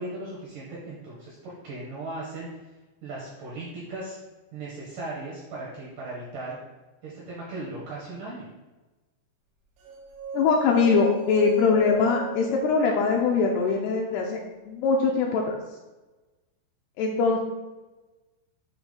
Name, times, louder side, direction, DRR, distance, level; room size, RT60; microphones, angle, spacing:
voice 1, 0.0-2.5 3.0-4.2 4.5-6.6 7.0-8.5, right 2 dB, 75° right, -5 dB, 2.0 m, -37 dB
sound 1, 9.9-14.0, right 1 dB, 90° right, 3.5 m, -37 dB
voice 2, 10.3-15.6 17.0-17.4, left 4 dB, 90° left, 0 dB, 2.3 m, -22 dB
7.9 x 2.9 x 5.1 m, 1.1 s
omnidirectional pair, 5.3 m